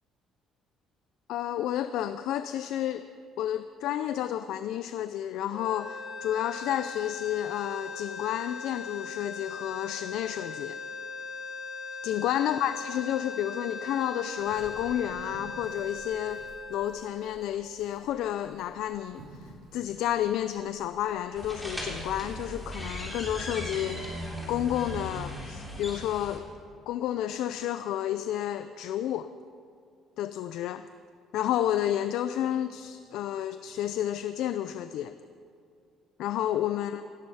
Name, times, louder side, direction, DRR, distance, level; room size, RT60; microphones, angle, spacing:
voice 1, 1.3-3.1 3.4-10.8 12.0-16.4 16.7-26.5 26.9-29.3 30.2-30.9 31.3-35.2 36.2-37.0, left 11 dB, 75° left, 11 dB, 0.5 m, -31 dB
sound 1, 5.5-17.8, left 4 dB, 45° left, 1.1 m, -39 dB
sound 2, 14.4-24.0, right 1 dB, 65° right, 5.0 m, -53 dB
sound 3, 21.4-26.4, equal, 5° left, 3.3 m, -37 dB
17.5 x 14.5 x 5.6 m, 2.3 s
cardioid pair, 155°, 0 cm